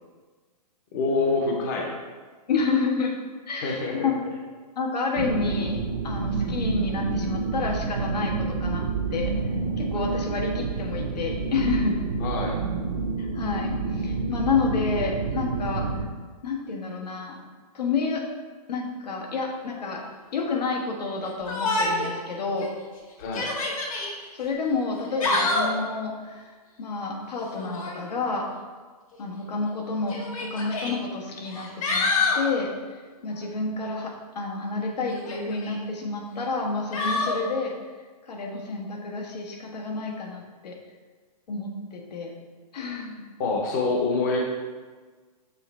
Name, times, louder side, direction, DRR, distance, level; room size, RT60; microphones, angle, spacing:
voice 1, 0.9-1.9 3.6-4.1 12.2-12.6 23.2-23.5 43.4-44.4, left 3 dB, 30° left, 0 dB, 0.7 m, -26 dB
voice 2, 2.5-3.1 3.5-4.1 4.8-12.0 13.2-16.0 16.4-17.4 17.7-18.3 18.7-20.0 20.3-22.7 24.3-28.5 29.2-37.7 38.2-40.8 41.5-42.3 42.7-43.2, left 4 dB, 85° left, 1 dB, 1.3 m, -29 dB
sound 1, 5.2-16.1, right 4 dB, 50° right, 0.7 m, -28 dB
Yell, 21.5-22.2 22.6-22.7 23.2-24.1 25.0-25.8 27.5-28.0 29.1-29.2 30.1-30.9 31.5-32.4 35.1-35.8 36.9-37.4, left 3 dB, 60° left, 1.4 m, -26 dB
6.9 x 3.4 x 4.2 m, 1.4 s
hypercardioid pair, 165°, 20 cm